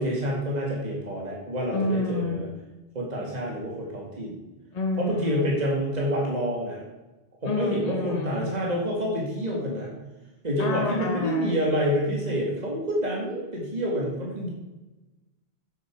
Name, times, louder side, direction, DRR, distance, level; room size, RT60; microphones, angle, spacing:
voice 1, 0.0-2.5 2.9-4.4 5.0-6.8 7.4-9.9 10.4-14.5, equal, 40° right, -3 dB, 2.2 m, -28 dB
voice 2, 1.7-2.4 4.7-5.5 7.4-8.5 10.6-11.5, left 2 dB, 40° left, 2 dB, 1.2 m, -29 dB
9.9 x 8.4 x 4.6 m, 1.1 s
omnidirectional pair, 1.1 m